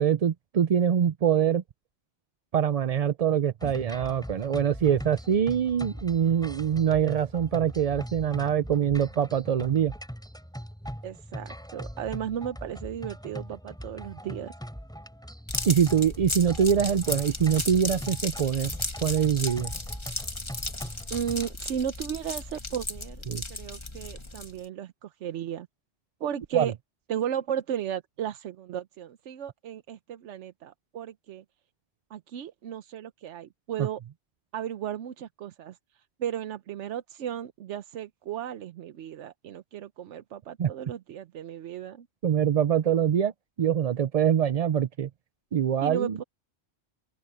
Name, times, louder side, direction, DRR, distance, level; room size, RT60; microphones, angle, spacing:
voice 1, 0.0-1.6 2.5-9.9 15.7-18.7 19.0-19.7 23.3-23.4 26.5-26.7 33.8-33.9 40.6-40.7 42.2-43.3 43.6-45.1 45.5-46.2, right 8 dB, 55° right, 0.4 m, -24 dB
sound 1, 3.6-21.5, equal, 5° left, 5.4 m, -41 dB
voice 2, 11.0-14.5 21.1-23.2 23.5-25.7 26.2-26.7 27.1-31.4 32.1-34.0 34.5-35.8 36.2-42.1 45.8-46.2, right 9 dB, 85° right, 1.0 m, -35 dB
sound 2, 15.5-24.7, left 2 dB, 25° left, 1.6 m, -35 dB
open air
omnidirectional pair, 1.2 m